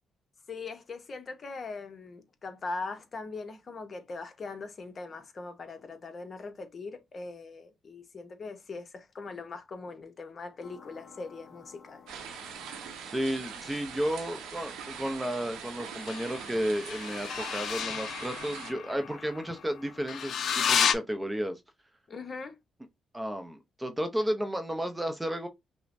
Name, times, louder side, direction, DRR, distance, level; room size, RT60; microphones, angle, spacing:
voice 1, 0.5-12.1 22.1-22.6, left 3 dB, 40° left, 0.9 m, -41 dB
sound 1, 10.6-13.7 16.0-20.9, left 7 dB, 65° left, 0.4 m, -33 dB
sound 2, 12.1-18.7, right 7 dB, 90° right, 0.8 m, -42 dB
voice 2, 13.0-21.6 23.1-25.5, equal, 10° right, 0.6 m, -33 dB
5.6 x 2.1 x 2.6 m
cardioid pair, 90°, 0 cm